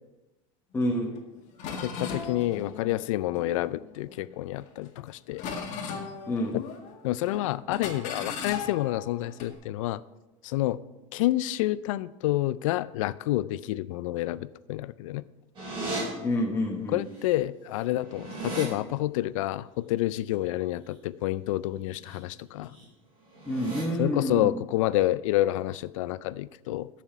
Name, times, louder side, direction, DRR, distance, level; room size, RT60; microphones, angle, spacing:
voice 1, 0.7-1.1 6.3-6.6 16.2-17.0 23.5-24.6, left 1 dB, 15° left, -1 dB, 1.2 m, -28 dB
sound 1, 1.1-1.2 1.6-4.1 4.6-5.0 5.4-7.0 7.2-7.4 7.7-9.5, left 5 dB, 45° left, 1.7 m, -37 dB
voice 2, 1.8-5.4 6.5-6.6 7.0-10.0 10.4-10.8 11.1-15.2 16.9-22.7 24.0-26.9, left 15 dB, 90° left, 18 dB, 0.4 m, -28 dB
sound 2, 15.5-16.0 17.2-17.3 17.6-18.7 21.8-22.2 22.5-22.8 23.3-23.8, right 2 dB, 30° right, 4.3 m, -36 dB
13.5 x 5.9 x 4.6 m, 1.0 s
supercardioid pair, 140°, 16 cm